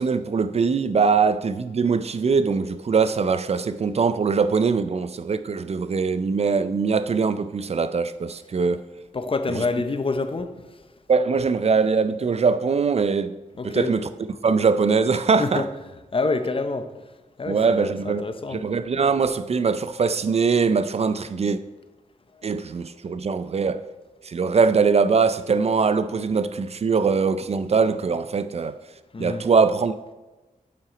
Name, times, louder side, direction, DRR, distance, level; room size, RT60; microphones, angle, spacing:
voice 1, 0.0-8.8 11.1-13.4 13.6-14.1 14.4-15.6 17.5-18.2 18.5-21.6 22.4-23.8 24.2-28.8 29.2-30.1, right 5 dB, 45° right, 0.4 m, -22 dB
voice 2, 9.1-10.9 13.6-13.9 15.4-15.7 16.1-18.6 22.3-22.4 29.1-29.5, left 3 dB, 40° left, 0.6 m, -27 dB
7.8 x 5.8 x 4.9 m
wide cardioid pair, 90°, 15 cm